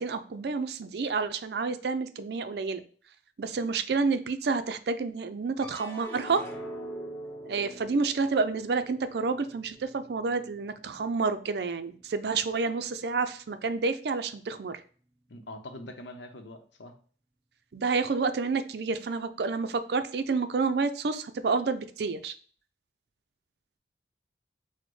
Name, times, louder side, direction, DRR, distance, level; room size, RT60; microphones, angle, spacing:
voice 1, 0.0-2.8 3.4-6.4 7.4-14.8 17.7-22.3, right 4 dB, 65° right, 0.4 m, -29 dB
sound 1, 5.6-12.1 12.5-13.2, right 1 dB, 20° left, 1.3 m, -44 dB
voice 2, 15.3-17.0, left 1 dB, 90° left, 0.7 m, -43 dB
6.1 x 2.1 x 3.1 m
head